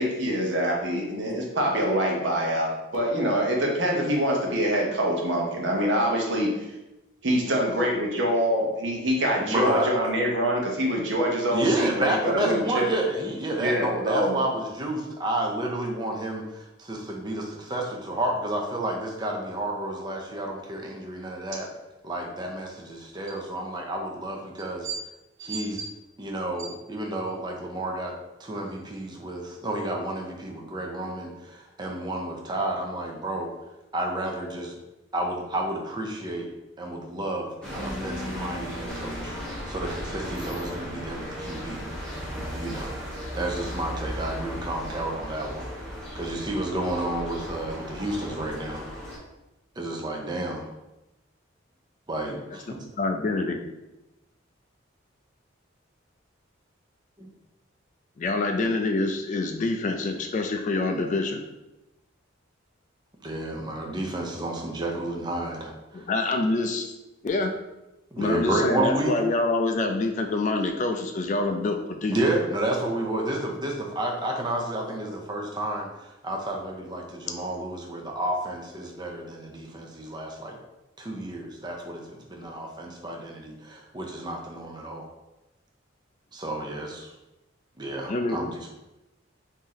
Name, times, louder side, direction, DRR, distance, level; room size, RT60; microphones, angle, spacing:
voice 1, 0.0-6.7 7.2-12.9 13.6-14.3 24.8-25.0 25.4-25.9, equal, 60° right, -1 dB, 0.8 m, -25 dB
voice 2, 9.4-10.0 11.5-21.7 22.0-24.9 25.4-25.8 26.2-28.1 28.4-33.5 33.9-34.6 35.1-36.5 36.8-39.4 39.7-41.8 42.5-43.0 43.3-48.8 49.8-50.7 52.1-52.8 63.2-66.1 68.1-69.1 72.1-80.6 81.0-85.1 86.3-87.1 87.8-88.6, right 1 dB, 20° right, 0 dB, 0.5 m, -30 dB
sound 1, 37.6-49.2, equal, 5° left, 0.9 m, -36 dB
voice 3, 53.0-53.6 58.2-61.4 65.9-66.9 67.2-67.5 68.2-72.2 88.1-88.4, left 2 dB, 40° left, 4 dB, 0.3 m, -26 dB
3.0 x 2.7 x 3.9 m, 0.96 s
head